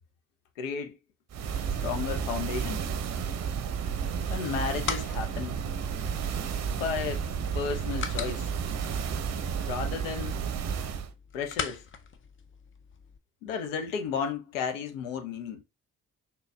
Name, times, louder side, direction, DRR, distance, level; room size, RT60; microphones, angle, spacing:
voice 1, 0.6-1.0 1.8-2.8 4.3-5.6 6.7-7.2 7.5-8.5 9.7-10.4 11.3-11.8 13.4-15.6, left 6 dB, 80° left, 0.6 m, -33 dB
sound 1, 1.3-11.1, right 7 dB, 45° right, 0.6 m, -32 dB
sound 2, 4.3-13.2, left 6 dB, 30° left, 0.5 m, -41 dB
3.8 x 2.8 x 2.2 m
hypercardioid pair, 40°, 39 cm